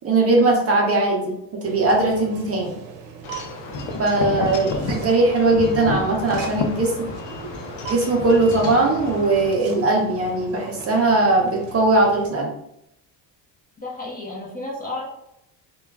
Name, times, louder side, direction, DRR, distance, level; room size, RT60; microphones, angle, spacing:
voice 1, 0.0-1.3 1.6-2.8 4.0-4.7 5.0-7.1 7.9-12.5, right 2 dB, 35° right, 0 dB, 0.5 m, -19 dB
sound 1, 1.6-12.3, right 6 dB, 90° right, 0.6 m, -38 dB
Wind chime / Wind, 3.2-9.5, left 4 dB, 80° left, 0.6 m, -31 dB
voice 2, 4.4-5.0 13.8-15.0, left 2 dB, 20° left, -4 dB, 0.4 m, -33 dB
2.2 x 2.1 x 3.3 m, 0.80 s
cardioid pair, 150°, 42 cm